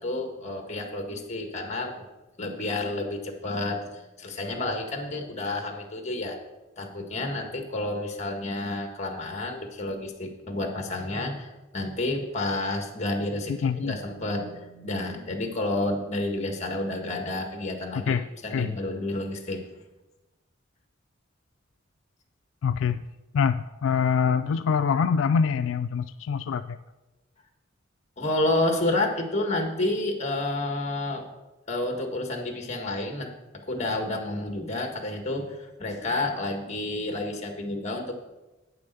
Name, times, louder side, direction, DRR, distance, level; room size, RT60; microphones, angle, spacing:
voice 1, 0.0-2.1 2.4-6.4 6.8-11.5 11.7-18.2 18.4-19.6 28.2-31.2 31.7-33.3 33.7-38.1, left 2 dB, 35° left, 4 dB, 1.7 m, -30 dB
voice 2, 13.6-14.0 18.1-18.8 22.6-23.0 23.3-26.8, left 6 dB, 75° left, 10 dB, 0.3 m, -25 dB
9.1 x 6.8 x 6.8 m, 1.1 s
head